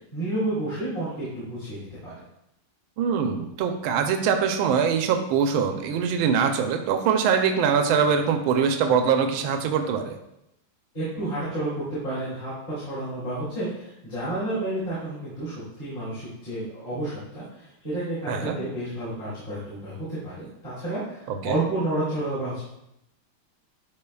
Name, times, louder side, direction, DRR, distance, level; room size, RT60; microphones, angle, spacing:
voice 1, 0.0-2.1 10.9-22.6, right 1 dB, 25° left, -13 dB, 2.7 m, -30 dB
voice 2, 3.0-10.2 18.3-18.6 21.3-21.6, right 6 dB, 80° right, 6 dB, 1.4 m, -23 dB
10.5 x 4.1 x 2.3 m, 0.82 s
omnidirectional pair, 2.3 m